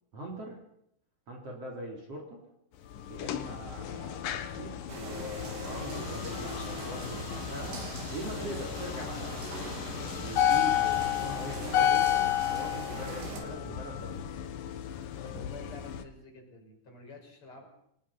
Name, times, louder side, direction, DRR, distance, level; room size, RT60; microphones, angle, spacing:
voice 1, 0.1-0.6 1.3-2.4 3.1-7.9 8.1-9.5 10.2-14.2, right 1 dB, 35° right, 0 dB, 3.9 m, -42 dB
sound 1, 2.9-16.0, left 11 dB, 65° left, 2.2 m, -32 dB
sound 2, 4.9-13.4, right 3 dB, 75° right, 6.2 m, -42 dB
voice 2, 15.2-17.7, left 3 dB, 30° left, 1 dB, 5.9 m, -48 dB
29.5 x 17.5 x 5.7 m, 0.74 s
omnidirectional pair, 5.4 m